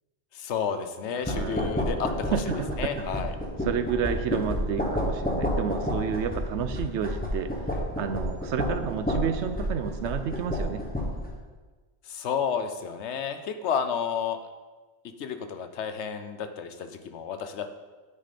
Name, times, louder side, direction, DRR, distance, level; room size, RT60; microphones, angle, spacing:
voice 1, 0.3-2.4 2.8-3.3 12.0-14.4 15.2-17.7, left 7 dB, 80° left, 8 dB, 1.0 m, -31 dB
sound 1, 1.2-11.3, equal, 10° left, 1.3 m, -30 dB
voice 2, 1.3-1.7 2.3-2.9 3.6-7.5 8.0-10.8, right 7 dB, 85° right, 10 dB, 0.9 m, -30 dB
9.2 x 6.3 x 4.2 m, 1.3 s
omnidirectional pair, 1.2 m